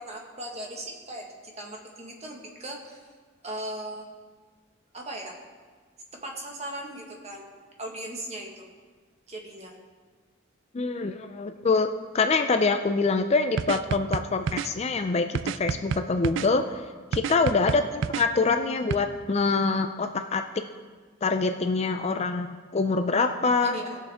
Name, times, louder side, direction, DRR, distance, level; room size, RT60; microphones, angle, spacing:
voice 1, 0.0-3.1 3.4-4.1 4.9-5.4 6.1-7.5 7.8-8.7 9.3-9.8 17.6-17.9 23.6-24.0, right 1 dB, 35° right, 0 dB, 1.6 m, -38 dB
voice 2, 10.7-11.9 12.1-16.9 17.1-20.4 21.2-23.8, left 4 dB, 35° left, 7 dB, 0.4 m, -25 dB
sound 1, 13.6-14.7 15.4-16.5 17.1-18.3 18.9-19.0, right 6 dB, 65° right, 0.3 m, -29 dB
18.5 x 6.7 x 3.6 m, 1.5 s
head